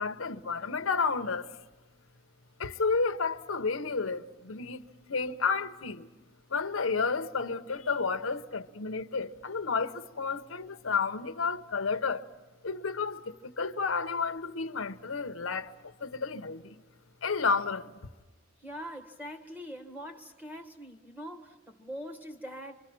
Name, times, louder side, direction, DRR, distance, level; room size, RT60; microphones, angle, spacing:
voice 1, 0.0-1.5 2.6-4.8 5.1-6.1 6.5-12.2 12.6-15.7 16.0-16.8 17.2-17.9, left 4 dB, 90° left, 0.9 m, -31 dB
voice 2, 18.6-22.8, equal, 10° right, 1.7 m, -43 dB
26.5 x 25.5 x 6.1 m
head